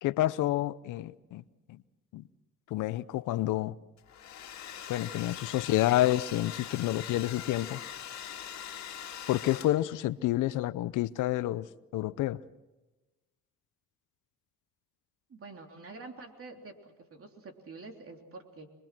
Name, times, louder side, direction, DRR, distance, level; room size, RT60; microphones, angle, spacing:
voice 1, 0.0-1.4 1.7-1.8 2.1-2.2 2.7-3.7 4.9-7.8 9.3-11.7 11.9-12.4, left 15 dB, 85° left, 0.8 m, -29 dB
Domestic sounds home sounds, 4.0-10.0, left 9 dB, 65° left, 2.1 m, -42 dB
voice 2, 15.3-18.7, right 3 dB, 45° right, 3.5 m, -47 dB
26.0 x 22.0 x 6.1 m
cardioid pair, 90°, 30 cm